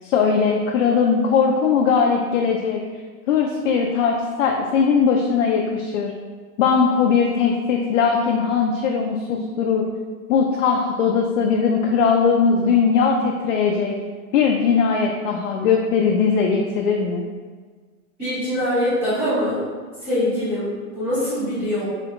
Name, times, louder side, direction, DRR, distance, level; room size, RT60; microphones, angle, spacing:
voice 1, 0.0-2.8 3.3-6.1 6.6-9.9 10.3-13.9 14.3-17.2, left 6 dB, 60° left, 0 dB, 0.5 m, -19 dB
voice 2, 18.2-19.6 20.0-21.8, left 1 dB, 5° right, -21 dB, 0.3 m, -23 dB
3.6 x 2.2 x 3.6 m, 1.5 s
hypercardioid pair, 155°, 45 cm